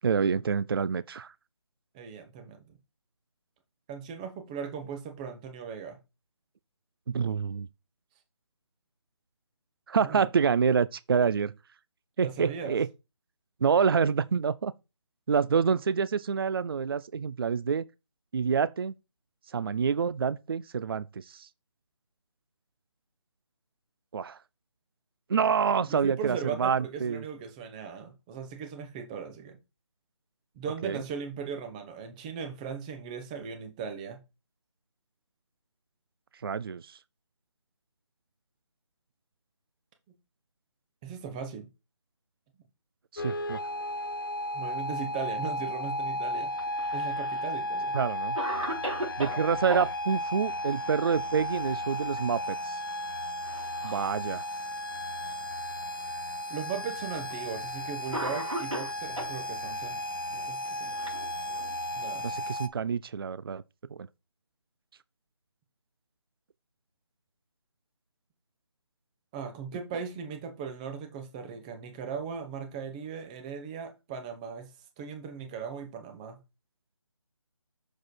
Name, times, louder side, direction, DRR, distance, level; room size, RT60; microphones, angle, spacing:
voice 1, 0.0-1.3 7.1-7.7 9.9-11.5 12.2-12.9 13.6-14.7 15.3-17.8 18.3-18.9 19.5-21.5 24.1-24.4 25.3-27.2 30.8-31.0 36.4-36.8 43.1-43.6 47.9-48.4 49.2-52.8 53.8-54.4 62.2-63.6, right 6 dB, 50° right, 0.4 m, -27 dB
voice 2, 1.9-2.8 3.9-6.0 10.0-10.3 12.2-12.8 25.8-29.6 30.5-34.2 41.0-41.7 44.5-46.5 46.9-48.0 56.5-60.0 60.3-60.9 62.0-62.3 69.3-74.7 75.0-76.4, right 6 dB, 15° right, 1.0 m, -38 dB
sound 1, 43.2-62.7, left 1 dB, 45° left, 0.7 m, -34 dB
Cough, 46.5-47.4 47.9-48.0 48.4-49.9 51.8-52.2 52.5-52.6 53.4-54.1 54.9-55.0 56.1-56.2 57.3-57.5 58.1-59.4 60.3-61.8, right 1 dB, 90° right, 4.4 m, -36 dB
6.6 x 4.7 x 4.5 m
figure-of-eight pair, 160°, 16 cm